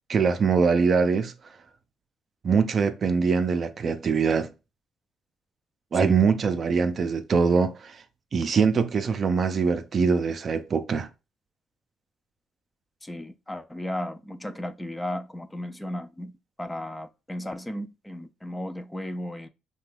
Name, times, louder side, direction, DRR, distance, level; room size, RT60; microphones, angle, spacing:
voice 1, 0.1-1.3 2.4-4.5 5.9-8.0 8.3-11.1, right 5 dB, 50° right, 0.4 m, -23 dB
voice 2, 13.0-16.3 16.6-19.5, left 1 dB, 15° left, 0.4 m, -35 dB
2.8 x 2.2 x 3.2 m
supercardioid pair, 60°, 0 cm